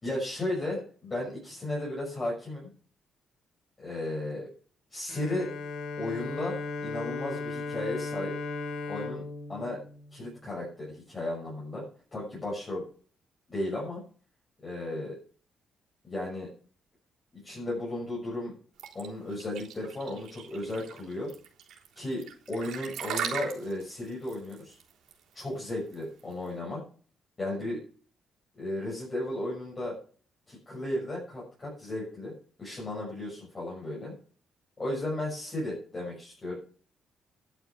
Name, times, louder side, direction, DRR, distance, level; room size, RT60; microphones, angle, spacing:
voice 1, 0.0-2.7 3.8-4.5 4.9-5.5 6.0-8.3 8.9-9.2 9.5-9.8 10.1-11.8 12.1-12.8 13.5-14.0 14.6-15.2 16.0-16.5 17.3-18.5 18.9-21.3 21.9-24.8 25.3-26.8 27.4-27.8 28.6-30.0 30.5-32.3 32.6-34.1 34.8-36.6, left 1 dB, 25° left, -5 dB, 6.3 m, -34 dB
Bowed string instrument, 5.1-10.8, left 3 dB, 80° left, 2.4 m, -37 dB
sound 1, 18.8-26.5, right 8 dB, 80° right, 3.7 m, -39 dB
11.5 x 7.3 x 7.2 m, 0.44 s
cardioid pair, 145°, 0 cm